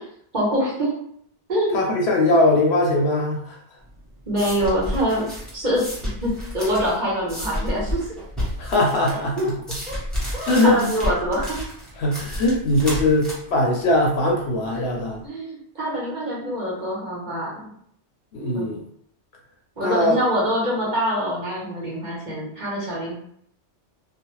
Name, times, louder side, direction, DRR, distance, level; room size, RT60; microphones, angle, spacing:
voice 1, 0.3-0.9 1.5-1.8 4.3-5.8 6.2-8.1 9.1-9.5 9.9-10.0 10.3-11.6 15.2-17.7 18.5-18.7 19.8-23.1, equal, 45° right, -6 dB, 1.0 m, -25 dB
voice 2, 1.7-3.6 8.6-9.4 10.5-10.8 12.0-15.2 18.3-18.8 19.8-20.2, left 1 dB, 70° left, 0 dB, 0.8 m, -20 dB
sound 1, 3.8-15.2, equal, ahead, 0.8 m, -32 dB
2.4 x 2.1 x 3.0 m, 0.67 s
omnidirectional pair, 1.2 m